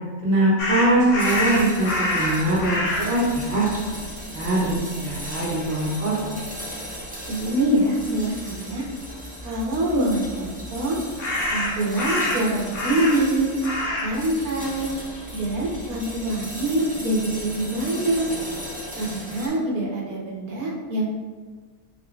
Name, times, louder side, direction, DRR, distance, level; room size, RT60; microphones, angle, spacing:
voice 1, 0.2-3.7 4.3-4.7 5.0-6.3, right 1 dB, 50° right, -7 dB, 1.1 m, -22 dB
sound 1, 0.6-3.1 4.0-4.1 4.4-5.3 11.2-13.4 13.6-14.2 14.4-16.0, left 1 dB, 60° left, 1.0 m, -26 dB
sound 2, 1.2-19.5, equal, 10° right, 0.3 m, -37 dB
voice 2, 7.3-8.8 9.4-11.0 11.5-13.5 14.0-14.9 15.3-18.3 19.0-21.1, right 1 dB, 70° right, -3 dB, 1.3 m, -24 dB
4.2 x 3.7 x 2.3 m, 1.5 s
omnidirectional pair, 1.6 m